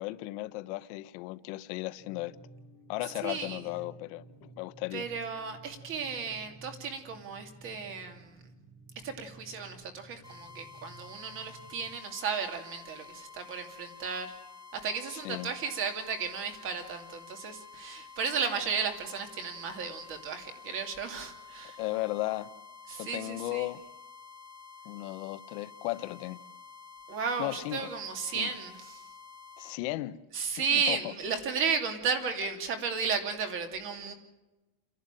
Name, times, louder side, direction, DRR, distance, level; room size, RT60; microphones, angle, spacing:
voice 1, 0.0-2.3 2.9-5.0 15.2-15.5 21.8-22.5 22.9-23.8 24.8-26.4 27.4-27.9 28.3-28.5 29.6-30.2 30.6-31.1, left 18 dB, 60° left, 1.0 m, -35 dB
sound 1, 2.0-11.9, right 2 dB, 65° right, 6.5 m, -54 dB
voice 2, 3.2-3.7 4.9-8.5 9.0-14.4 14.8-21.8 22.9-23.7 27.1-29.1 30.3-34.1, right 5 dB, 35° right, 2.6 m, -34 dB
sound 2, 10.2-29.8, left 5 dB, 10° right, 2.3 m, -50 dB
30.0 x 11.5 x 9.0 m
cardioid pair, 180°, 37 cm